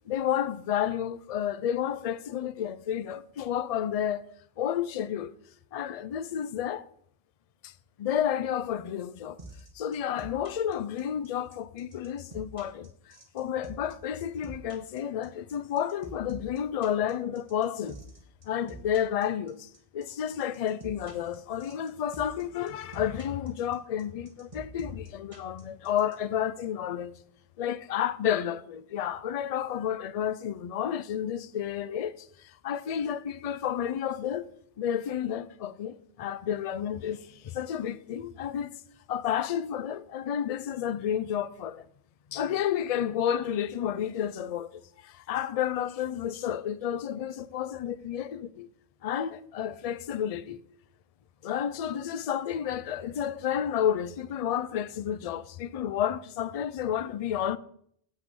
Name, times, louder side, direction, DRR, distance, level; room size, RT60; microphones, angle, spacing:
voice 1, 0.1-4.2 4.6-5.3 5.7-6.9 7.6-7.7 8.0-9.4 9.7-18.0 18.4-27.1 27.6-34.5 34.8-38.7 39.1-41.9 42.3-48.7 49.0-50.6 51.4-57.6, left 9 dB, 55° left, 0.4 m, -31 dB
sound 1, 9.4-26.2, right 2 dB, 30° right, 1.5 m, -46 dB
7.7 x 6.1 x 6.8 m
omnidirectional pair, 1.1 m